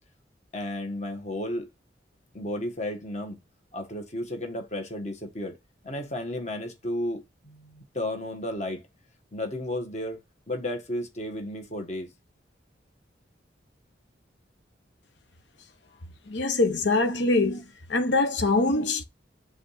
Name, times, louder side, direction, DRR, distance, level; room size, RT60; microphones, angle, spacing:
voice 1, 0.5-1.7 2.3-3.4 3.7-5.6 5.8-8.8 9.3-10.2 10.5-12.1, left 1 dB, 40° left, 1.6 m, -33 dB
voice 2, 16.3-17.6 17.9-19.0, left 2 dB, 75° left, 1.2 m, -23 dB
5.0 x 3.7 x 5.7 m
head